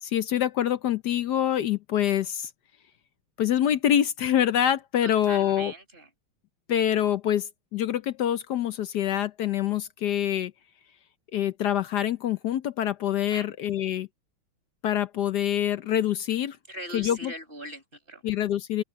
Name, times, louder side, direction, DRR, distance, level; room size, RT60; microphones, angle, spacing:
voice 1, 0.0-2.5 3.4-5.7 6.7-10.5 11.3-14.1 14.8-16.6 16.9-17.3 18.2-18.8, left 10 dB, 65° left, 1.1 m, -25 dB
voice 2, 5.0-6.1 13.3-13.5 16.7-18.2, right 1 dB, 25° right, 6.0 m, -40 dB
open air
omnidirectional pair, 2.3 m